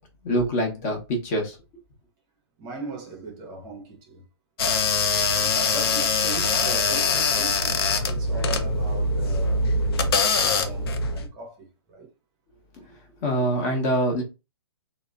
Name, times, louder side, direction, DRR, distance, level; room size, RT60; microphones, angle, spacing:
voice 1, 0.2-1.6 13.2-14.2, equal, 35° left, 0.8 m, -24 dB
voice 2, 2.6-4.2 5.2-7.8 8.1-9.6 10.2-12.1, right 3 dB, 25° right, 0.6 m, -39 dB
sound 1, 4.6-11.3, left 3 dB, 60° left, 0.5 m, -23 dB
3.0 x 2.0 x 2.3 m
hypercardioid pair, 140°, 14 cm